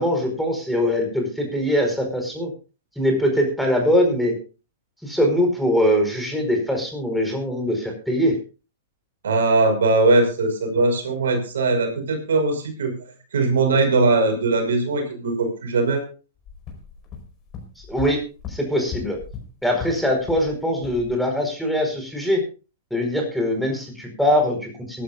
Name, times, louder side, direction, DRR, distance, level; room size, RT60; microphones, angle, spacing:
voice 1, 0.0-2.5 3.0-4.3 5.0-8.3 17.9-18.2 18.5-19.2 19.6-22.4 22.9-25.0, equal, ahead, 2 dB, 4.8 m, -22 dB
voice 2, 9.2-12.9 13.3-16.1, right 3 dB, 75° right, 5 dB, 5.3 m, -20 dB
sound 1, 16.4-20.5 20.8-21.1, left 6 dB, 30° left, 4.8 m, -37 dB
23.0 x 12.0 x 2.5 m, 0.33 s
hypercardioid pair, 115°, 0 cm